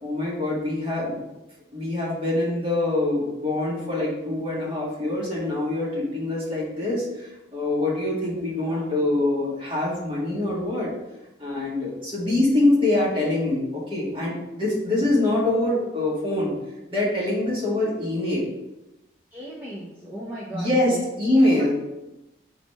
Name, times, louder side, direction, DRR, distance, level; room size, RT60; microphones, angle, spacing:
voice 1, 0.0-1.2 1.7-10.9 11.4-16.5 16.9-18.5 20.5-21.7, left 2 dB, 30° right, -6 dB, 2.0 m, -24 dB
voice 2, 19.3-21.0 21.5-21.7, right 1 dB, 10° right, -9 dB, 0.9 m, -37 dB
4.2 x 4.1 x 5.6 m, 0.97 s
head